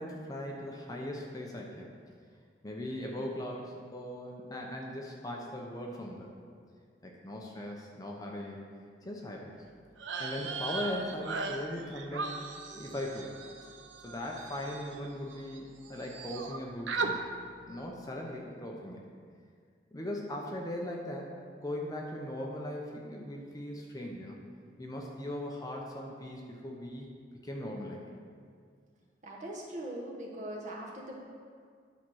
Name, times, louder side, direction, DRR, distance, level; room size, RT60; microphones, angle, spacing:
voice 1, 0.0-1.9 2.6-6.3 7.0-8.6 9.0-9.5 10.2-12.4 12.7-13.3 14.0-17.4 17.7-19.0 19.9-24.4 24.8-27.1 27.4-28.0, left 1 dB, 20° left, -1 dB, 0.8 m, -39 dB
sound 1, 10.0-15.6 15.8-16.6 16.9-17.1, right 4 dB, 85° right, 0.7 m, -38 dB
voice 2, 29.2-31.2, right 1 dB, 40° right, -2 dB, 1.3 m, -41 dB
10.0 x 4.4 x 6.3 m, 2.1 s
head